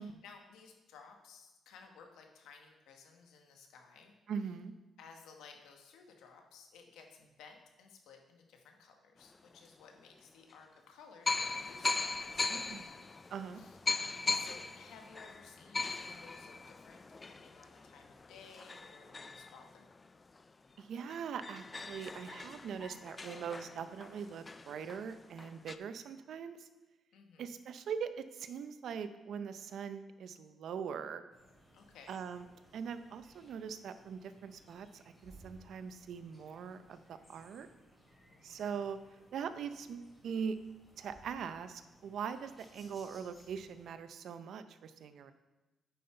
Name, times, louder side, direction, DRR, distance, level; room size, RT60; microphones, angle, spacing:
voice 1, 0.0-4.2 5.0-13.8 14.3-19.9 27.1-27.6 31.7-32.1 38.3-39.0, left 5 dB, 85° left, 3 dB, 1.3 m, -57 dB
voice 2, 4.3-4.7 12.5-12.9 13.3-13.6 20.8-26.7 27.4-31.2 32.1-32.4 32.7-37.7 38.4-39.0 39.3-40.6 41.0-45.3, right 7 dB, 70° right, 11 dB, 0.5 m, -42 dB
sound 1, 9.5-9.6 10.5-10.6 11.3-20.4 20.8-20.9 21.1-25.8, left 3 dB, 30° left, 0.4 m, -39 dB
sound 2, 31.3-43.9, right 1 dB, 10° left, 3.0 m, -62 dB
9.2 x 5.5 x 4.4 m, 1.1 s
cardioid pair, 95°, 0 cm